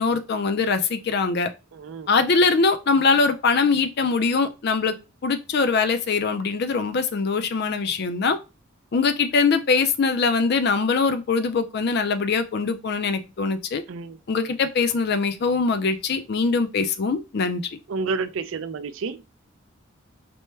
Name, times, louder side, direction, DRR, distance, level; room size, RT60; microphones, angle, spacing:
voice 1, 0.0-1.5 2.1-4.9 5.2-8.4 8.9-13.8 14.3-17.8, left 4 dB, 50° left, 0.4 m, -22 dB
voice 2, 1.7-2.1 13.9-14.2 17.9-19.2, right 4 dB, 65° right, 0.4 m, -30 dB
4.4 x 2.1 x 3.2 m
head